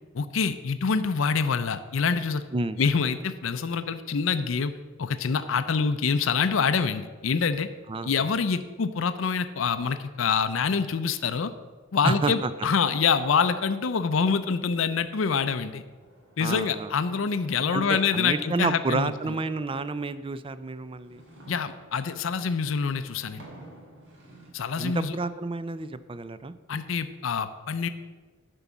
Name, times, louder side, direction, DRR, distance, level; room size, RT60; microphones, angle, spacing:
voice 1, 0.1-2.4 2.8-4.7 5.0-7.7 8.0-11.5 11.9-15.8 16.4-19.4 21.5-23.4 24.5-25.1 26.7-27.9, left 5 dB, 70° left, 11 dB, 0.5 m, -26 dB
voice 2, 7.9-8.3 12.0-12.5 16.4-16.9 17.7-21.2 24.8-26.5, right 3 dB, 25° right, 14 dB, 0.4 m, -30 dB
sound 1, 15.7-20.0 20.6-24.5, right 1 dB, 60° right, 2.8 m, -52 dB
9.8 x 5.4 x 7.1 m, 1.4 s
head